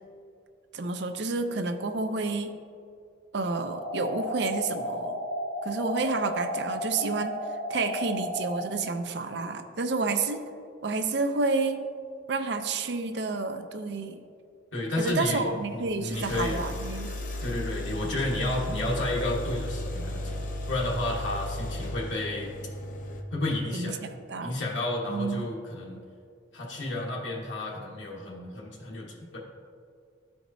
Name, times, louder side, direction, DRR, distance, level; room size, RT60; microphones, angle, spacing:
voice 1, 0.7-2.6 3.3-5.3 5.6-7.4 7.7-10.5 10.8-11.8 12.3-14.2 15.0-17.1 23.7-24.5 25.1-25.4, right 3 dB, 60° right, 8 dB, 0.5 m, -30 dB
sound 1, 3.6-8.7, equal, 15° left, 0.8 m, -33 dB
voice 2, 14.7-16.7 17.4-22.5 23.3-24.0 24.4-26.0 26.5-29.4, left 2 dB, 70° left, -4 dB, 1.2 m, -31 dB
sound 2, 15.1-15.2 16.1-23.2, left 1 dB, 40° left, 0.6 m, -35 dB
13.0 x 4.6 x 2.7 m, 2.3 s
head